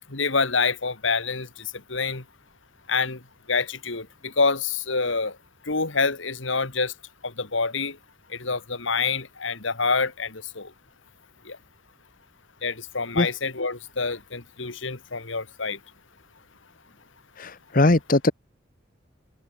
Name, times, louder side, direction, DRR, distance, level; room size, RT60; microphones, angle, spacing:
voice 1, 0.1-1.5 1.9-2.2 2.9-3.2 3.5-5.3 5.7-6.9 7.2-8.0 8.4-10.7 11.5-11.6 12.6-15.8, left 4 dB, 75° left, 2.3 m, -26 dB
voice 2, 17.4-18.3, left 2 dB, 45° left, 1.2 m, -20 dB
head